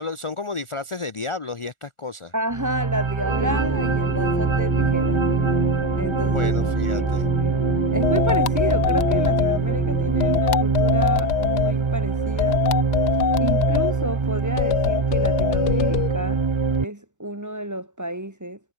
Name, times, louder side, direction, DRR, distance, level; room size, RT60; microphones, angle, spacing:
voice 1, 0.0-2.3 6.2-7.3, left 3 dB, 40° left, 0.4 m, -31 dB
voice 2, 2.3-5.3 6.0-6.5 6.9-12.6 13.4-16.4 16.8-18.6, right 1 dB, 10° right, 1.4 m, -30 dB
sound 1, 2.5-16.9, right 4 dB, 45° right, 0.4 m, -23 dB
sound 2, 3.2-10.4, left 1 dB, 5° left, 1.9 m, -30 dB
sound 3, 8.0-9.6 10.2-11.7 12.4-13.9 14.6-16.1, left 11 dB, 80° left, 1.5 m, -23 dB
omnidirectional pair, 1.7 m